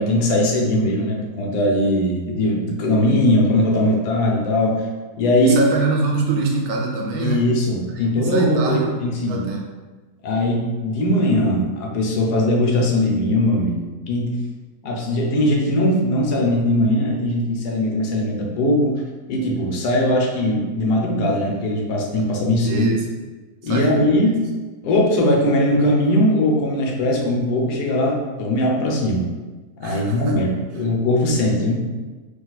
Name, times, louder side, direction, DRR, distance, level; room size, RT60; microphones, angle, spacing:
voice 1, 0.0-4.8 5.2-5.6 7.2-9.5 10.2-14.4 14.8-19.0 19.3-22.9 23.6-24.5 24.8-29.3 29.8-31.8, left 1 dB, 80° left, -1 dB, 1.2 m, -20 dB
voice 2, 5.4-7.5 7.9-9.0 9.3-9.6 22.6-23.1 23.6-24.3 29.8-30.4, right 3 dB, 75° right, 1 dB, 1.0 m, -24 dB
3.7 x 2.5 x 2.3 m, 1.3 s
omnidirectional pair, 1.7 m